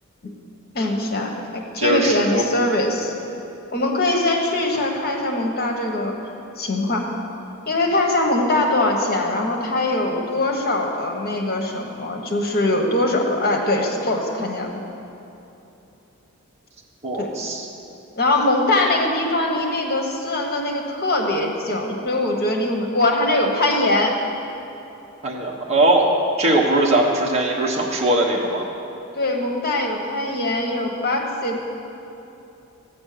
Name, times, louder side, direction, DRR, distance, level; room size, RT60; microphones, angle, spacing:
voice 1, 0.7-3.1 3.7-6.1 6.6-7.1 7.7-14.8 17.2-17.3 18.2-24.2 29.2-31.6, left 2 dB, 50° left, 1 dB, 1.4 m, -22 dB
voice 2, 1.8-2.4 17.0-17.7 25.2-26.1 26.4-28.7, right 1 dB, 30° right, -2 dB, 1.3 m, -20 dB
13.5 x 9.4 x 6.8 m, 2.9 s
head